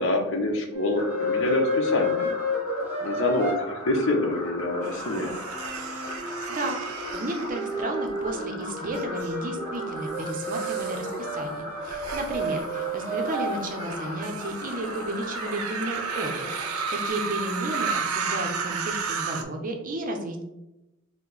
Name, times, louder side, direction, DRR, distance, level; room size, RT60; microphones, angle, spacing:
voice 1, 0.0-2.3 3.0-5.3, left 2 dB, 65° left, 3 dB, 0.7 m, -26 dB
sound 1, 0.7-3.6 5.5-13.6, left 1 dB, 5° right, 1.4 m, -31 dB
sound 2, 1.0-17.1, left 1 dB, 30° left, 1.1 m, -38 dB
sound 3, 4.8-8.3 8.8-9.3 10.1-19.4, right 5 dB, 85° right, 0.5 m, -34 dB
voice 2, 6.5-20.4, right 1 dB, 40° right, 4 dB, 0.6 m, -33 dB
4.6 x 2.1 x 4.0 m, 0.94 s
head